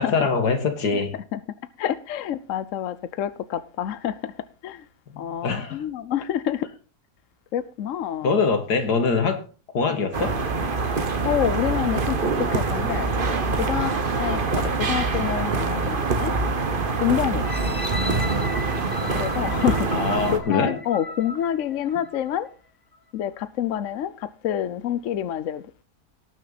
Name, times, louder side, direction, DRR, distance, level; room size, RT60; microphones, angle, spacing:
voice 1, 0.0-1.1 5.1-5.8 8.2-9.4 9.7-10.3 19.9-20.7, left 4 dB, 85° left, 2.4 m, -23 dB
voice 2, 1.8-4.3 4.6-4.9 5.2-6.7 7.5-8.4 10.0-10.1 11.2-13.1 13.6-13.9 14.2-16.3 17.0-17.5 19.1-19.9 20.3-22.5 23.1-25.8, left 10 dB, 60° left, 1.0 m, -27 dB
sound 1, 10.1-20.4, right 4 dB, 35° right, 1.3 m, -25 dB
sound 2, 17.4-22.4 22.9-23.0, left 2 dB, 20° left, 0.6 m, -36 dB
18.5 x 6.4 x 4.1 m
omnidirectional pair, 1.7 m